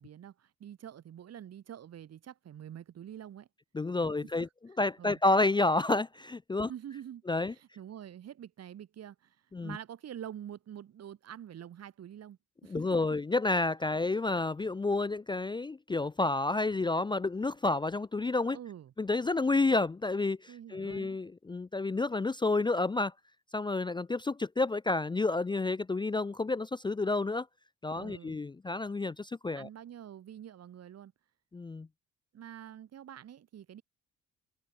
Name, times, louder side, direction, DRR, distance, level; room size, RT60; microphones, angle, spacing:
voice 1, 0.0-3.5 4.0-4.1 4.4-4.5 5.0-5.2 6.7-7.2 7.5-9.4 9.6-13.1 18.5-18.9 20.5-21.2 27.9-28.4 29.5-31.1 32.3-33.8, right 10 dB, 55° right, 1.5 m, -46 dB
voice 2, 3.7-4.5 4.8-6.7 7.3-7.5 9.5-9.8 12.7-18.6 19.0-23.1 23.5-27.5 27.8-29.7 31.5-31.9, left 3 dB, 15° left, 0.5 m, -30 dB
cardioid pair, 90°, 30 cm